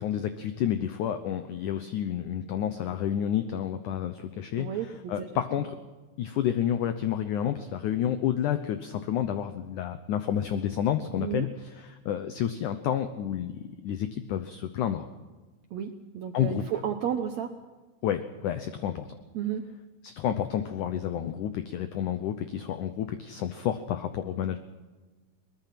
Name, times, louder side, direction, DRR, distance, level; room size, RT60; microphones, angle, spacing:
voice 1, 0.0-4.8 5.1-5.8 6.2-15.1 16.3-16.6 18.0-19.1 20.0-24.6, left 10 dB, 75° left, 9 dB, 1.9 m, -30 dB
voice 2, 4.5-5.3 11.2-11.5 15.7-17.5 19.3-19.6, right 9 dB, 80° right, 6 dB, 1.5 m, -32 dB
22.5 x 20.5 x 5.9 m, 1.3 s
omnidirectional pair, 4.5 m